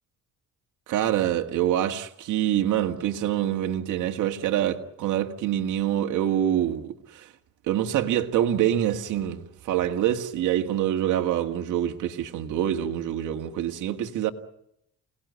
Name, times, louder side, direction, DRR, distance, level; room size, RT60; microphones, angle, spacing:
voice 1, 0.9-7.3 7.6-14.3, right 11 dB, 85° right, 1.9 m, -26 dB
28.5 x 19.0 x 9.5 m
cardioid pair, 90°, 30 cm